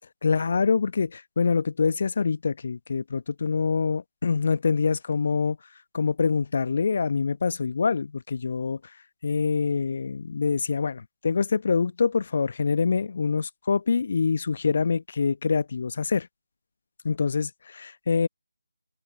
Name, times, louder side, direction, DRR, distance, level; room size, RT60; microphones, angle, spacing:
voice 1, 0.2-5.6 5.9-8.8 9.2-16.3 17.0-18.3, left 5 dB, 40° left, 1.3 m, -25 dB
figure-of-eight pair, 155°, 0 cm